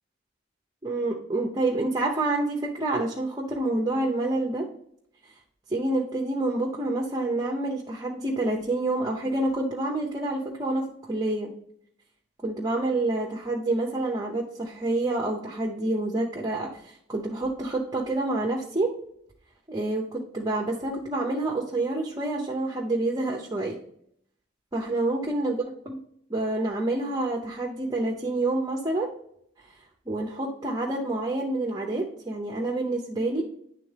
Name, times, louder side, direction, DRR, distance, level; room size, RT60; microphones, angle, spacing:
voice 1, 0.8-4.7 5.7-11.5 12.4-18.9 19.7-23.8 24.7-25.6 26.3-29.1 30.1-33.4, right 2 dB, 20° right, 0 dB, 0.7 m, -28 dB
9.8 x 3.6 x 3.3 m, 0.70 s
head